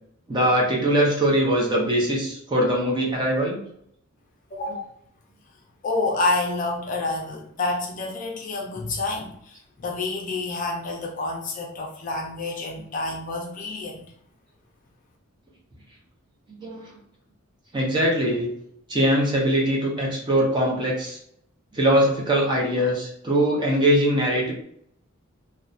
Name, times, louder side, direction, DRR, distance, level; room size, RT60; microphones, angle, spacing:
voice 1, 0.3-3.6 16.6-16.8 17.7-18.5 18.9-21.2 21.7-24.5, equal, 20° right, -3 dB, 0.6 m, -22 dB
voice 2, 4.5-4.8 5.8-14.0, left 2 dB, 40° left, 0 dB, 0.4 m, -28 dB
2.6 x 2.1 x 2.4 m, 0.69 s
head